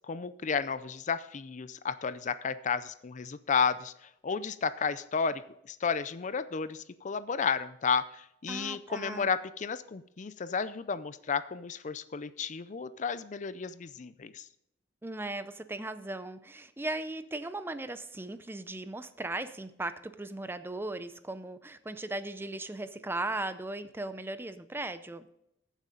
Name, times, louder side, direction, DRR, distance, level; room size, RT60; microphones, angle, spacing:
voice 1, 0.1-3.9 4.2-5.4 5.7-14.4, left 6 dB, 45° left, 15 dB, 0.5 m, -32 dB
voice 2, 8.5-9.3 15.0-25.3, right 2 dB, 15° right, 12 dB, 0.5 m, -37 dB
14.5 x 7.3 x 3.8 m, 0.78 s
head